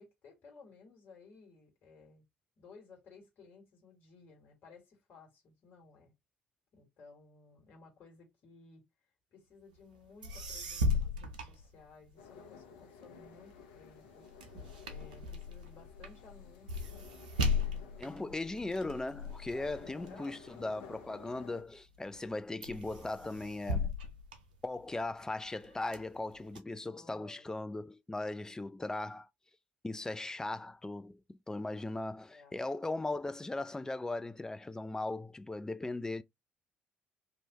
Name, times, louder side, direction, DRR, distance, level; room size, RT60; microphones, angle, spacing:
voice 1, 0.0-2.2 2.6-6.1 6.7-8.8 9.3-14.3 14.8-17.0 17.4-18.3 19.5-20.4 26.9-27.6 32.3-32.5, left 4 dB, 50° left, 1.6 m, -57 dB
sound 1, 9.9-10.0 10.2-12.3 12.8-21.4 21.9-22.3 22.6-25.1 25.6-26.6, left 3 dB, 80° right, 0.5 m, -37 dB
sound 2, 12.2-21.6, left 6 dB, 75° left, 0.5 m, -55 dB
voice 2, 18.0-23.9 24.6-29.3 29.8-36.2, left 2 dB, 15° left, 0.4 m, -38 dB
3.0 x 2.7 x 2.9 m
figure-of-eight pair, 50°, 4 cm